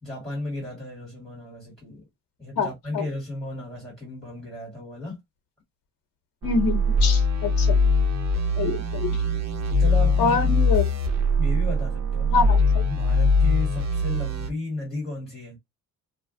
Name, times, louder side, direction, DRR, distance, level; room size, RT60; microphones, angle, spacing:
voice 1, 0.0-2.1 2.4-5.2 9.8-10.5 11.4-15.6, left 2 dB, ahead, 1.6 m, -34 dB
voice 2, 6.4-7.8 8.6-9.2 10.2-10.8 12.3-12.8, left 5 dB, 75° left, 1.0 m, -25 dB
sound 1, 6.4-14.5, left 2 dB, 50° right, 0.8 m, -22 dB
2.6 x 2.1 x 3.7 m
wide cardioid pair, 170°, 35 cm